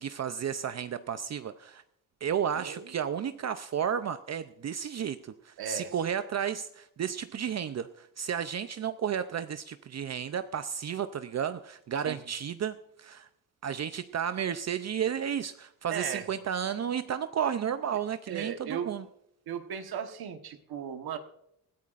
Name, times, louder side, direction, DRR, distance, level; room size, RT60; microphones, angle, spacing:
voice 1, 0.0-1.8 2.2-13.3 13.6-19.1, right 8 dB, 45° right, 11 dB, 0.6 m, -32 dB
voice 2, 2.5-2.9 5.6-5.9 12.0-12.2 15.9-16.2 18.3-18.9 19.5-21.2, right 8 dB, 85° right, 7 dB, 1.3 m, -36 dB
20.5 x 14.0 x 2.5 m, 0.76 s
cardioid pair, 115°, 36 cm